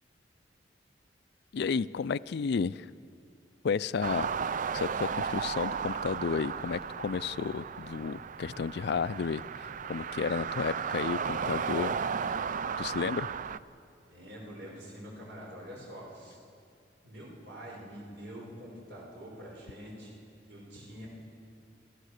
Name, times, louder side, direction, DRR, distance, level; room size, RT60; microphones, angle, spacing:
voice 1, 1.5-2.9 3.6-4.3 4.7-9.4 9.8-11.9 12.8-13.3, left 5 dB, 65° left, 18 dB, 0.4 m, -32 dB
sound 1, 4.0-13.6, right 6 dB, 45° right, 0.4 m, -34 dB
voice 2, 14.0-16.4 17.0-20.2 20.5-21.1, equal, 75° right, -2 dB, 6.0 m, -46 dB
28.5 x 14.5 x 6.6 m, 2.4 s
head